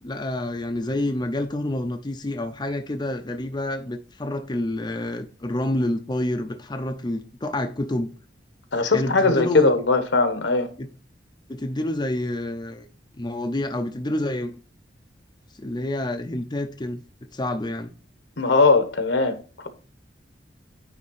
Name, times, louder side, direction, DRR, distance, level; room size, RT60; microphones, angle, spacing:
voice 1, 0.0-8.1 8.9-9.7 10.8-10.9 11.5-12.9 13.2-14.6 15.6-17.9, left 1 dB, 25° left, 0.6 m, -28 dB
voice 2, 8.7-10.7 18.4-19.7, left 3 dB, 75° left, 1.1 m, -20 dB
9.7 x 3.5 x 4.7 m
head